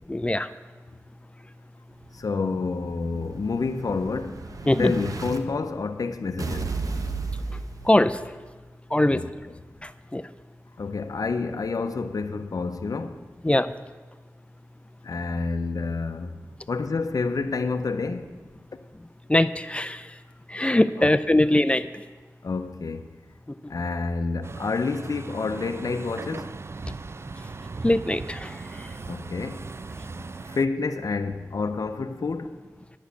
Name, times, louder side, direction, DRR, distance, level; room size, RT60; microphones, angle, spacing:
voice 1, 0.1-0.5 4.7-4.9 7.9-8.2 8.9-9.2 10.1-10.2 13.4-13.7 19.3-20.0 20.5-21.9 27.8-28.5, left 1 dB, 20° left, 0.4 m, -21 dB
Explosion, 2.0-5.4 6.4-8.4, right 4 dB, 65° right, 0.9 m, -34 dB
voice 2, 2.1-4.4 4.8-6.7 9.1-9.3 10.8-13.2 15.0-16.4 16.7-18.4 21.0-21.4 22.4-23.1 23.7-26.5 29.1-29.7 30.5-32.5, left 4 dB, 70° left, 0.6 m, -29 dB
Truck, 24.4-30.7, right 3 dB, 45° right, 0.4 m, -38 dB
10.5 x 6.3 x 8.3 m
wide cardioid pair, 55°, 6 cm